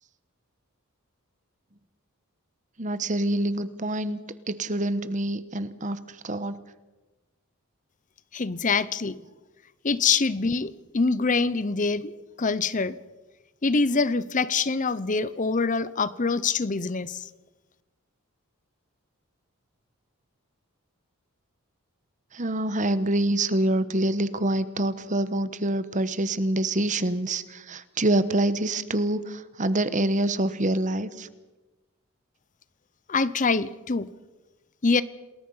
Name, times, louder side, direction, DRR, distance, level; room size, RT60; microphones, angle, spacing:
voice 1, 2.8-4.2 4.5-6.6 22.3-31.3, right 1 dB, 35° right, 14 dB, 1.1 m, -26 dB
voice 2, 8.3-9.2 9.8-13.0 13.6-17.3 33.1-34.1 34.8-35.0, left 4 dB, 35° left, 17 dB, 0.7 m, -25 dB
28.0 x 20.5 x 5.6 m, 1.1 s
head